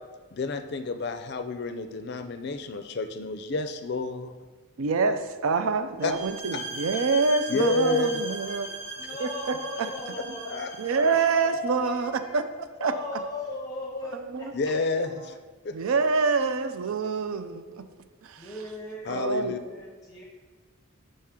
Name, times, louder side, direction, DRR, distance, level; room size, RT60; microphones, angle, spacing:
voice 1, 0.3-4.3 6.0-6.1 6.5-6.6 7.5-8.2 10.5-10.7 11.0-11.2 14.5-15.3 15.6-15.7 19.1-19.6, left 3 dB, 50° left, 8 dB, 0.4 m, -29 dB
voice 2, 4.8-8.8 9.2-9.9 10.8-12.4 12.8-12.9 14.3-14.5 15.7-17.9 18.3-18.5 19.1-19.6, right 4 dB, 80° right, 10 dB, 0.4 m, -26 dB
sound 1, 6.0-11.3, right 1 dB, 25° right, 1.1 m, -38 dB
voice 3, 7.8-10.7 11.0-12.5 12.8-14.5 18.4-19.2 19.5-20.2, left 1 dB, 15° left, -3 dB, 0.7 m, -37 dB
5.6 x 5.2 x 3.7 m, 1.4 s
head